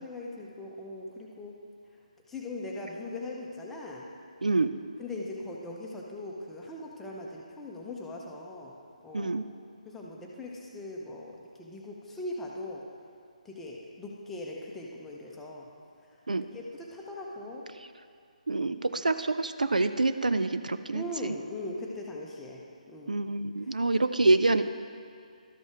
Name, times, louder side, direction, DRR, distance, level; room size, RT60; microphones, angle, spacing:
voice 1, 0.0-1.6 2.3-4.1 5.0-8.7 9.0-9.3 9.9-12.8 13.4-15.7 16.5-17.7 20.9-22.6 22.9-23.2, left 2 dB, 5° left, -3 dB, 0.8 m, -40 dB
voice 2, 9.1-9.5 16.3-16.5 17.7-17.9 18.5-21.3 23.1-24.7, right 2 dB, 70° right, 10 dB, 0.4 m, -26 dB
12.5 x 5.4 x 4.7 m, 2.4 s
figure-of-eight pair, 145°, 4 cm